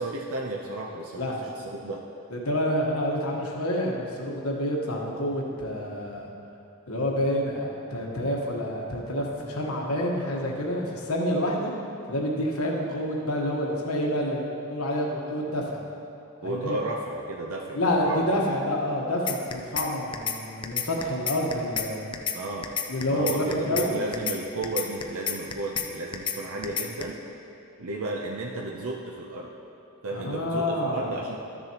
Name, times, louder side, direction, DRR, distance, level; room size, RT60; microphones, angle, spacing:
voice 1, 0.0-2.0 16.4-18.4 22.3-22.7 23.1-27.2 27.8-29.5 30.0-31.4, right 2 dB, 70° right, -1 dB, 0.7 m, -33 dB
voice 2, 2.3-6.3 6.9-11.7 12.1-15.8 16.4-16.8 17.7-22.1 22.9-24.0 30.1-31.1, left 1 dB, 75° left, -1 dB, 1.3 m, -28 dB
sound 1, 19.3-19.9 20.1-20.4 20.6-21.9 22.1-22.4 22.6-23.9 24.1-24.4 24.6-25.9 26.1-26.4 26.6-27.0, left 7 dB, 20° left, 0.4 m, -29 dB
13.0 x 6.8 x 3.0 m, 2.8 s
head